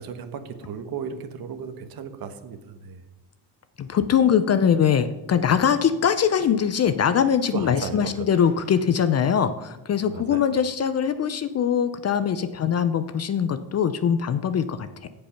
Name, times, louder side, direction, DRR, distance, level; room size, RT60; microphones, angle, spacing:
voice 1, 0.0-3.0 7.5-8.4 10.0-10.5, right 6 dB, 50° right, 9 dB, 1.3 m, -35 dB
voice 2, 3.8-15.1, left 8 dB, 35° left, 12 dB, 0.5 m, -22 dB
15.5 x 5.5 x 5.8 m, 1.0 s
cardioid pair, 130°, 46 cm